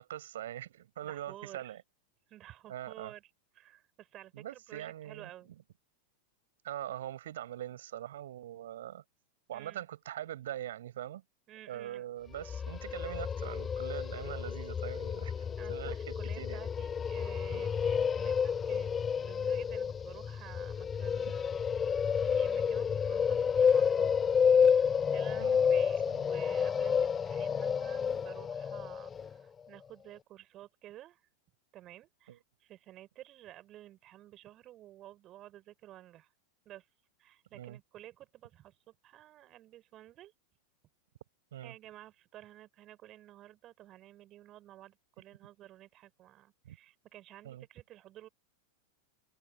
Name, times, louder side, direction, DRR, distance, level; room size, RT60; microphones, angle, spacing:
voice 1, 0.0-1.8 2.7-3.1 4.3-5.5 6.6-9.0 9.5-11.2 11.7-16.6 17.5-17.7 25.4-25.6 26.1-26.2 32.3-32.4 37.5-37.8 41.5-41.7 46.6-46.8 47.4-47.6, right 12 dB, 60° right, 6.8 m, -42 dB
voice 2, 1.0-1.8 2.3-3.3 3.6-5.5 9.5-9.9 11.5-12.1 15.5-18.9 19.2-21.5 21.8-24.2 25.1-31.2 31.7-36.3 36.7-36.9 37.2-40.3 41.6-48.3, right 13 dB, 35° right, 5.6 m, -52 dB
sound 1, 12.3-29.3, left 7 dB, 20° left, 1.3 m, -30 dB
figure-of-eight pair, 90°, 0 cm